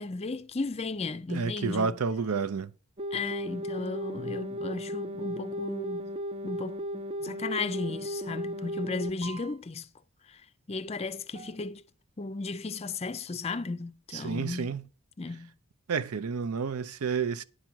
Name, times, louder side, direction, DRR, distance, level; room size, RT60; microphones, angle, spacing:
voice 1, 0.0-2.0 3.1-6.1 6.4-9.9 10.3-10.4 10.7-11.8 12.2-14.8 15.2-15.5, left 3 dB, 30° left, 0.5 m, -35 dB
voice 2, 1.3-2.7 14.2-14.8 15.9-17.4, right 5 dB, 85° right, 0.6 m, -30 dB
sound 1, 3.0-9.6 11.4-11.5, equal, 25° right, 0.5 m, -36 dB
9.8 x 5.8 x 6.1 m
head